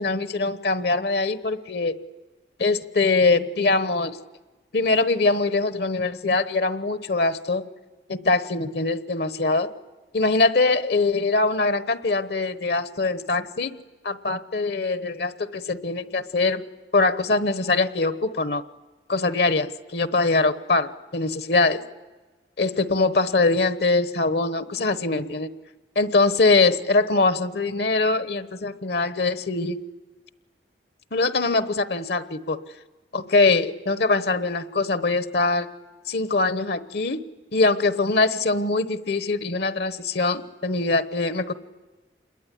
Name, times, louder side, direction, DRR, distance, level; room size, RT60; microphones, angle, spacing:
voice 1, 0.0-2.0 2.6-4.2 4.7-7.6 8.1-9.7 10.1-13.7 14.0-16.6 16.9-18.6 19.1-21.8 22.6-25.5 25.9-29.8 31.1-32.6 33.1-35.7 36.1-37.2 37.5-41.5, left 3 dB, 60° left, 13 dB, 1.1 m, -22 dB
27.5 x 21.5 x 10.0 m, 1.3 s
head